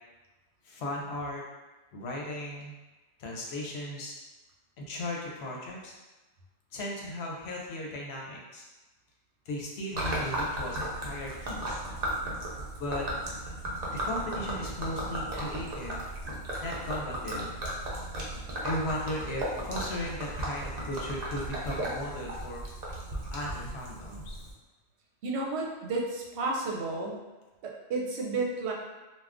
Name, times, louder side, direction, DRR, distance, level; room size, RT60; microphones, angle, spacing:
voice 1, 0.6-1.4 1.9-2.7 3.2-4.1 4.8-5.9 6.7-8.6 9.5-11.8 12.8-13.1 13.9-16.0 16.6-17.5 18.6-22.6 23.3-24.4, left 1 dB, 75° left, -2 dB, 0.9 m, -36 dB
Gurgling / Liquid, 9.9-24.5, right 1 dB, 50° right, 0.6 m, -35 dB
voice 2, 25.2-27.2 27.6-28.7, right 3 dB, 75° right, -1 dB, 0.8 m, -32 dB
2.4 x 2.2 x 3.4 m, 1.1 s
omnidirectional pair, 1.1 m